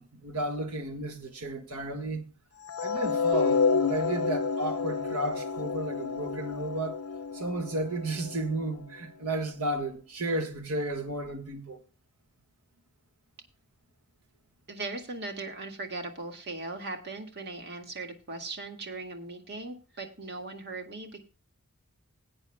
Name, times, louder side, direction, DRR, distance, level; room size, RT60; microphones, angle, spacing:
voice 1, 0.0-2.3 2.8-7.0 7.3-11.8, right 2 dB, 85° right, 1.6 m, -33 dB
sound 1, 2.7-8.9, left 5 dB, 75° left, 0.7 m, -30 dB
voice 2, 14.7-21.2, right 3 dB, 50° right, 1.9 m, -39 dB
20.5 x 8.8 x 2.2 m
head